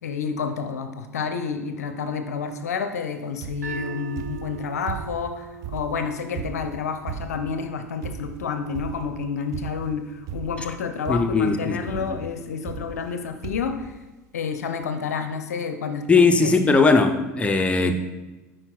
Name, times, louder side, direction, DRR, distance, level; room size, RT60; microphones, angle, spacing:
voice 1, 0.0-14.0 14.3-17.0, left 5 dB, 70° left, 8 dB, 0.5 m, -29 dB
sound 1, 3.4-3.8 4.2-5.3 5.6-7.6 8.0-8.4 8.7-9.2 9.5-9.9 10.3-10.8 11.0-11.5 11.9-12.2 12.6-13.2 13.4-13.8 14.5-14.6 14.8-14.9, right 8 dB, 40° right, 0.5 m, -36 dB
sound 2, 3.6-9.8, right 7 dB, 80° right, 1.0 m, -42 dB
voice 2, 11.1-12.2 16.1-17.9, left 4 dB, 15° left, 6 dB, 0.5 m, -19 dB
9.7 x 4.3 x 2.3 m, 1.1 s
figure-of-eight pair, 75°, 9 cm